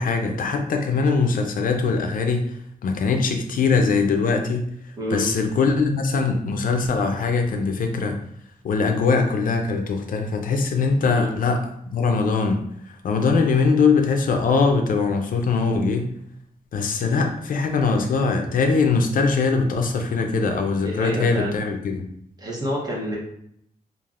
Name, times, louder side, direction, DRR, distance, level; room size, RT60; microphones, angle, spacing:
voice 1, 0.0-2.4 2.8-4.7 5.1-8.2 8.6-12.6 13.0-16.1 16.7-22.0, left 4 dB, 70° left, 4 dB, 0.4 m, -21 dB
voice 2, 5.0-5.3 11.0-11.3 20.4-21.5 22.4-23.2, equal, 25° right, -3 dB, 0.8 m, -29 dB
3.3 x 2.4 x 2.4 m, 0.72 s
wide cardioid pair, 165°, 15 cm